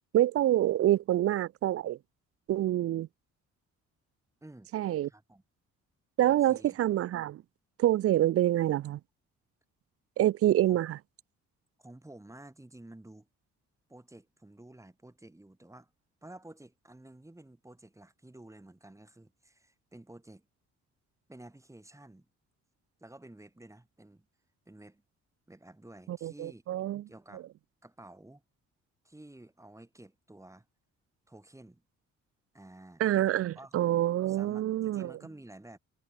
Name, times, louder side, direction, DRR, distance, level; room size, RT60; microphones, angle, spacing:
voice 1, 0.1-2.0 2.5-3.1 4.7-5.1 6.2-7.4 7.8-9.0 10.2-11.0 26.1-27.0 27.3-27.4 33.0-35.1, right 13 dB, 50° right, 0.4 m, -26 dB
voice 2, 5.0-5.4 6.3-6.8 10.7-10.8 11.8-13.3 13.9-15.9 16.2-20.4 21.3-22.3 23.0-24.3 24.7-25.0 25.5-26.6 27.1-27.5 27.8-28.4 29.0-30.7 31.3-31.8 32.5-33.0 33.5-33.8 34.3-35.8, right 1 dB, 10° right, 5.0 m, -52 dB
cardioid pair, 90°, 30 cm